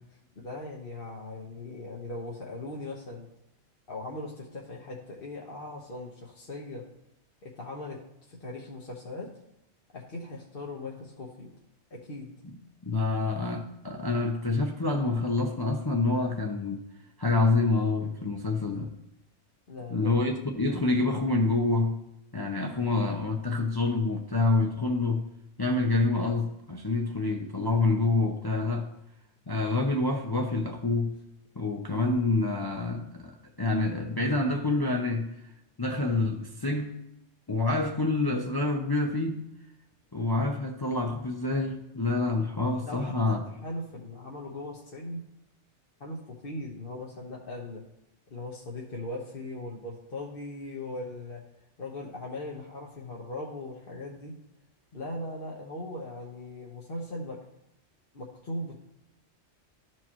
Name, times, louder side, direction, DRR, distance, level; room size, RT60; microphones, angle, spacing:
voice 1, 0.3-3.3 3.9-6.9 7.4-8.0 8.3-9.3 9.9-11.6 11.9-12.3 19.7-20.2 42.8-45.2 46.0-47.8 48.3-51.4 51.8-54.3 54.9-57.4 58.1-58.8, left 2 dB, 50° left, -3 dB, 1.2 m, -39 dB
voice 2, 12.8-16.9 17.2-18.9 19.9-22.1 22.3-25.3 25.6-28.9 29.5-31.2 31.6-35.3 35.8-36.9 37.5-39.5 40.1-43.4, left 3 dB, 25° left, 1 dB, 0.5 m, -27 dB
13.5 x 4.6 x 2.9 m, 0.85 s
omnidirectional pair, 1.2 m